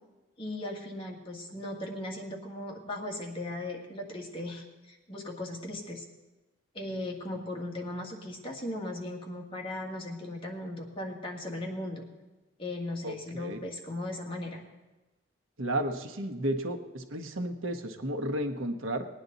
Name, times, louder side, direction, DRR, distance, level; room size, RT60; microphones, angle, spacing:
voice 1, 0.4-6.0 6.7-12.1 12.6-14.6, left 1 dB, 25° left, -1 dB, 1.9 m, -37 dB
voice 2, 13.0-13.7 15.6-19.1, right 1 dB, 85° right, 5 dB, 1.1 m, -33 dB
19.5 x 9.6 x 4.0 m, 1.1 s
head